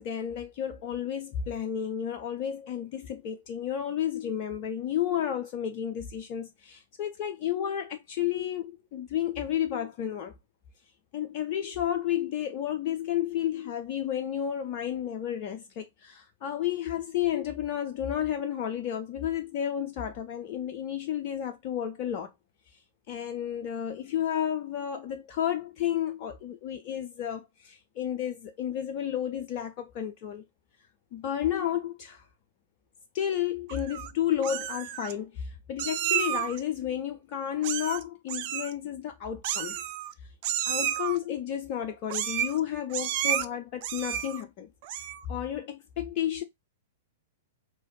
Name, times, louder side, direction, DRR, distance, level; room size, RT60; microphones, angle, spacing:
voice 1, 0.0-10.3 11.1-22.3 23.1-30.4 31.1-32.2 33.1-39.8 40.6-44.7 45.3-46.4, left 10 dB, 40° left, 0.4 m, -32 dB
Meow, 33.7-34.1 34.4-35.1 35.8-36.6 37.6-38.0 38.3-38.7 39.4-40.1 40.4-41.2 42.1-42.6 42.9-43.5 43.8-44.4 44.8-45.3, right 11 dB, 45° right, 0.3 m, -31 dB
3.1 x 2.8 x 2.9 m
figure-of-eight pair, 100°, 0 cm